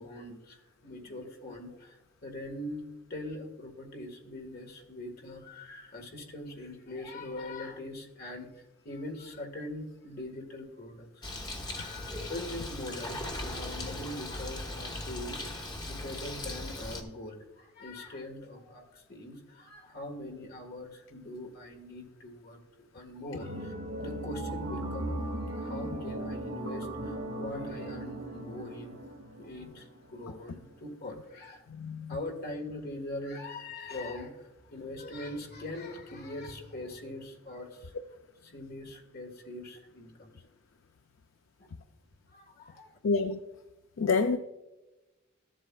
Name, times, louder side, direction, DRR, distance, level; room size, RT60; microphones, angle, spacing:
voice 1, 0.0-11.3 11.6-22.6 22.9-29.0 29.4-31.7 32.1-37.9 38.4-40.3 42.3-42.9, left 1 dB, 50° left, 1.6 m, -42 dB
Bird, 11.2-17.0, left 1 dB, 20° left, 0.9 m, -38 dB
sound 1, 23.4-30.4 30.7-30.8, right 1 dB, 70° right, 1.5 m, -38 dB
voice 2, 31.7-32.2 43.0-43.4 44.0-44.4, left 4 dB, 65° left, 0.4 m, -27 dB
13.5 x 7.7 x 2.3 m
head